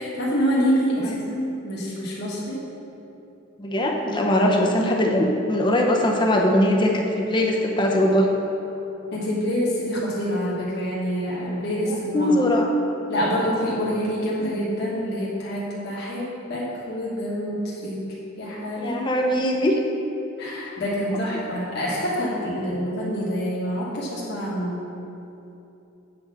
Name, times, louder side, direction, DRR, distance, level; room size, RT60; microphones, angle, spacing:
voice 1, 0.0-2.6 9.1-12.3 13.1-18.0 18.4-19.1 20.4-24.8, equal, 50° left, -7 dB, 1.4 m, -26 dB
voice 2, 3.6-8.3 11.9-12.7 18.8-19.8, left 1 dB, 20° left, 0 dB, 0.7 m, -21 dB
7.8 x 4.7 x 6.1 m, 2.9 s
head